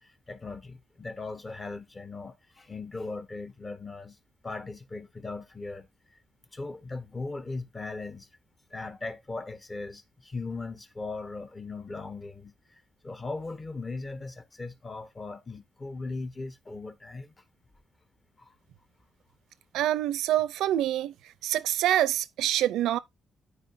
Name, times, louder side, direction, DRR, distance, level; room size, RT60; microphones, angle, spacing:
voice 1, 0.0-4.2 4.4-5.9 6.5-8.3 8.7-12.5 13.0-17.3 18.4-18.5, left 3 dB, 25° left, 1.3 m, -38 dB
voice 2, 19.7-21.1 21.4-23.0, right 12 dB, 85° right, 0.6 m, -26 dB
13.0 x 4.9 x 2.8 m
cardioid pair, 90°, 0 cm